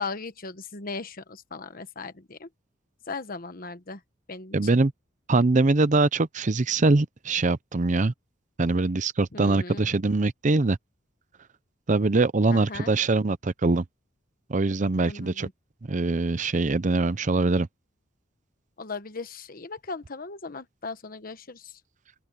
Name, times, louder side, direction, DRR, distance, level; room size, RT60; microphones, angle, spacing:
voice 1, 0.0-2.5 3.1-4.0 4.3-4.8 9.3-9.8 12.5-12.9 15.1-15.5 18.8-21.7, left 4 dB, 45° left, 1.2 m, -37 dB
voice 2, 4.5-4.9 5.3-8.1 8.6-10.8 11.9-13.8 14.5-15.5 15.9-17.7, right 3 dB, 40° right, 0.6 m, -23 dB
open air
head